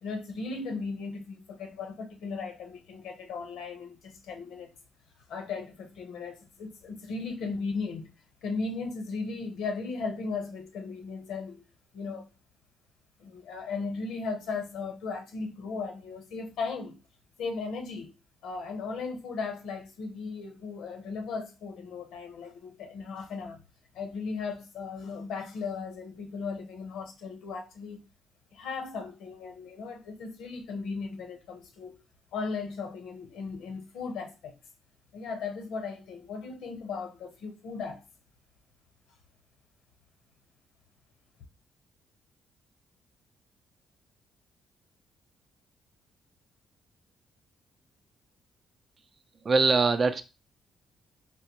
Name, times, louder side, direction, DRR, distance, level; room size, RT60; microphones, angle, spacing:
voice 1, 0.0-4.7 5.3-8.1 8.4-11.6 11.9-12.3 13.2-17.0 17.4-18.1 18.4-23.6 23.9-28.0 28.5-32.0 32.3-34.6 35.1-38.0, left 4 dB, 85° left, 0.7 m, -36 dB
voice 2, 49.4-50.2, right 4 dB, 40° right, 0.4 m, -22 dB
3.7 x 2.1 x 2.9 m
cardioid pair, 90°, 0 cm